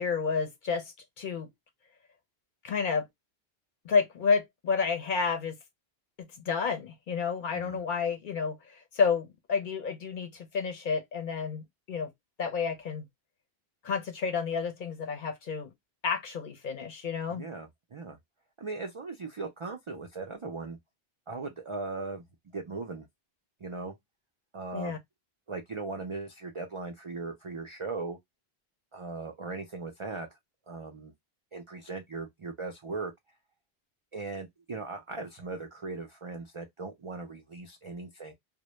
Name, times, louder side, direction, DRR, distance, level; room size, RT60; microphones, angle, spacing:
voice 1, 0.0-1.5 2.6-3.1 3.8-5.6 6.2-12.1 12.4-13.0 13.8-15.7 16.0-17.4 24.7-25.0, left 5 dB, 60° left, 0.6 m, -30 dB
voice 2, 17.3-18.2 18.6-20.8 21.3-22.2 22.5-23.1 23.6-24.0 24.5-25.0 25.5-28.2 28.9-30.3 30.7-31.1 31.5-33.1 34.1-38.3, right 3 dB, 55° right, 0.3 m, -38 dB
2.1 x 2.0 x 2.9 m
omnidirectional pair, 1.1 m